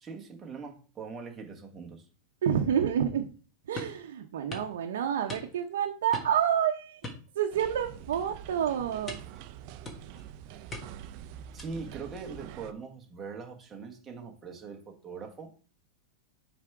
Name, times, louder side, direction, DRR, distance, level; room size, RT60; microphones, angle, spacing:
voice 1, 0.0-2.0 11.5-15.5, right 5 dB, 20° right, 1.2 m, -42 dB
voice 2, 2.4-3.3 3.7-7.0 7.4-9.2, right 9 dB, 80° right, 0.7 m, -28 dB
sound 1, 3.8-4.0 4.5-4.7 5.3-5.7 6.1-6.5 7.0-7.8 8.1-8.4 9.1-9.4 9.8-10.2 10.7-11.1 11.6-11.9, left 1 dB, 15° left, 1.3 m, -42 dB
sound 2, 7.5-12.7, right 10 dB, 45° right, 0.5 m, -45 dB
5.9 x 3.5 x 4.7 m
supercardioid pair, 145°, 0 cm